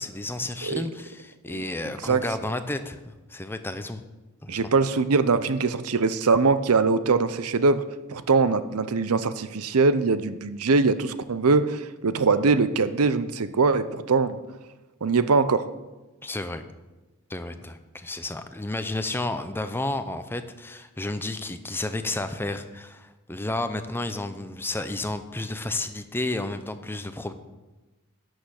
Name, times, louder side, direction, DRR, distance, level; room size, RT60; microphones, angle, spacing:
voice 1, 0.0-4.0 4.4-4.6 16.2-16.6 17.3-27.3, left 2 dB, 10° left, 9 dB, 0.6 m, -32 dB
voice 2, 4.5-7.8 8.1-14.4 15.0-15.6, right 4 dB, 80° right, 13 dB, 0.6 m, -22 dB
11.0 x 6.4 x 6.5 m, 1.1 s
head